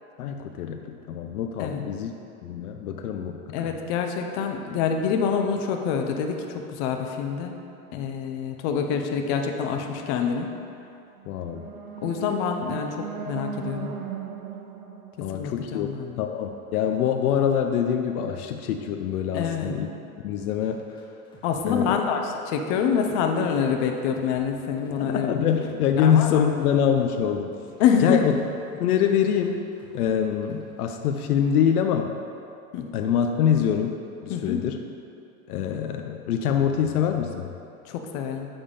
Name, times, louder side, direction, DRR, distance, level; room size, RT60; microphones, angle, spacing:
voice 1, 0.2-2.1 2.4-3.7 11.3-11.7 15.2-15.9 16.2-19.9 20.2-20.8 21.6-22.0 25.0-27.5 28.0-28.3 28.8-29.7 29.9-32.1 32.9-34.0 34.2-34.8 35.5-37.5, left 8 dB, 90° left, 5 dB, 0.6 m, -24 dB
voice 2, 3.5-7.5 7.9-10.5 12.0-13.9 15.3-16.2 19.3-19.8 21.4-25.3 26.0-26.4 27.8-28.2 32.7-32.9 34.3-34.6 37.8-38.5, left 7 dB, 50° left, 4 dB, 0.8 m, -26 dB
sound 1, 11.2-16.3, right 6 dB, 90° right, 0.8 m, -38 dB
sound 2, 20.4-22.4 22.7-25.2 25.5-28.0 28.3-30.8 31.1-31.5, left 1 dB, 10° left, 1.1 m, -53 dB
7.0 x 3.6 x 5.4 m, 2.6 s
supercardioid pair, 120°, 43 cm